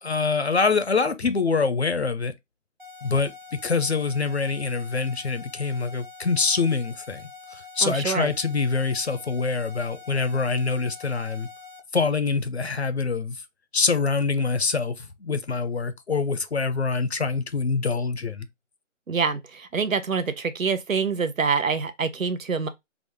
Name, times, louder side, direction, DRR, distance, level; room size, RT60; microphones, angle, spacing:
voice 1, 0.0-2.3 3.0-11.5 11.9-13.4 13.7-18.5, left 4 dB, 55° left, 0.5 m, -25 dB
sound 1, 2.8-11.8, left 4 dB, 40° right, 0.4 m, -45 dB
voice 2, 7.8-8.3 19.1-22.7, right 5 dB, 85° right, 0.8 m, -26 dB
3.5 x 2.0 x 3.3 m
figure-of-eight pair, 175°, 39 cm